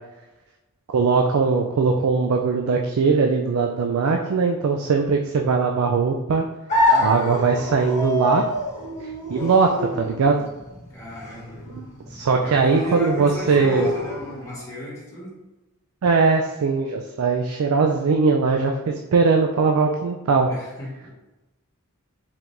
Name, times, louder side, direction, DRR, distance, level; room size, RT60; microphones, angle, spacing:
voice 1, 0.9-6.4 7.0-8.4 9.3-10.4 12.1-13.9 16.0-20.5, right 4 dB, 65° right, 2 dB, 0.4 m, -20 dB
sound 1, 6.7-14.6, left 1 dB, 30° left, 1.2 m, -27 dB
voice 2, 6.9-7.2 10.9-11.7 12.4-15.4 20.5-21.1, right 1 dB, 15° left, -8 dB, 1.4 m, -35 dB
4.6 x 3.7 x 2.5 m, 1.1 s
head